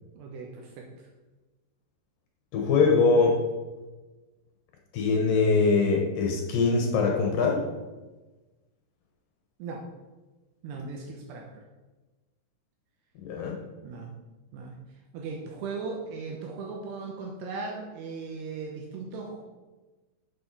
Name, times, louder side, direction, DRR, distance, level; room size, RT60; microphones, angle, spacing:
voice 1, 0.1-1.1 9.6-9.8 10.6-11.5 13.8-14.1 14.5-14.8 15.1-19.4, right 4 dB, 80° right, 0 dB, 3.1 m, -38 dB
voice 2, 2.5-3.4 4.9-7.6 13.2-13.6, left 4 dB, 70° left, 2 dB, 2.5 m, -23 dB
7.8 x 7.2 x 5.9 m, 1.2 s
omnidirectional pair, 4.6 m